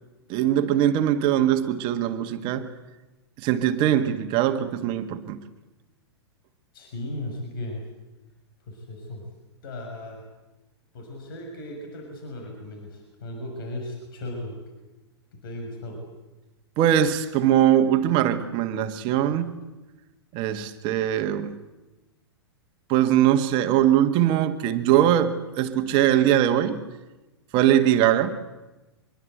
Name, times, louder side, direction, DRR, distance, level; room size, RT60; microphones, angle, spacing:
voice 1, 0.3-2.7 3.4-5.4 16.8-19.6 20.3-21.6 22.9-26.8 27.5-28.3, right 11 dB, 35° right, 1.8 m, -21 dB
voice 2, 6.7-7.8 8.7-9.2 9.6-10.2 10.9-14.5 15.4-16.0, left 1 dB, 55° left, 6.4 m, -36 dB
24.5 x 22.5 x 8.1 m
figure-of-eight pair, 105°, 14 cm